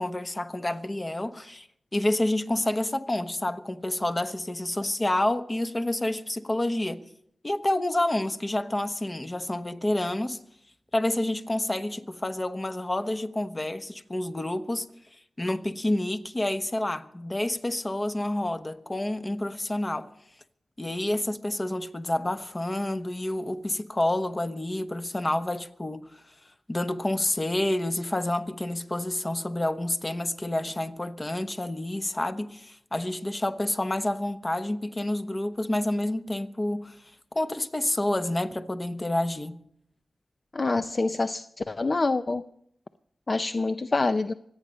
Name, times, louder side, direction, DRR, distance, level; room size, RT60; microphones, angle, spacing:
voice 1, 0.0-1.7 1.9-7.0 7.4-10.4 10.9-14.9 15.4-20.1 20.8-26.2 26.7-37.0 37.3-39.6, left 1 dB, 30° left, 1.1 m, -29 dB
voice 2, 40.5-42.4 43.3-44.3, left 3 dB, 45° left, 0.5 m, -26 dB
24.5 x 8.9 x 5.3 m
cardioid pair, 60°, 0 cm